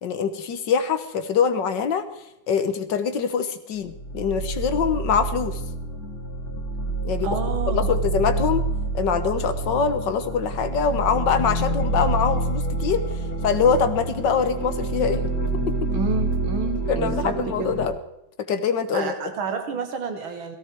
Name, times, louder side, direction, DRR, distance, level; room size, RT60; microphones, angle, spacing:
voice 1, 0.0-2.1 2.5-5.6 7.0-7.4 7.7-8.7 8.9-13.1 13.4-15.2 15.7-15.9 16.9-17.9 18.5-19.1, left 6 dB, 65° left, 10 dB, 1.8 m, -24 dB
sound 1, 3.8-17.9, right 2 dB, 45° left, 2.3 m, -27 dB
voice 2, 7.2-8.2 15.9-17.8 18.9-20.6, right 4 dB, 90° right, 6 dB, 2.4 m, -30 dB
18.0 x 16.0 x 4.6 m, 0.87 s
omnidirectional pair, 2.1 m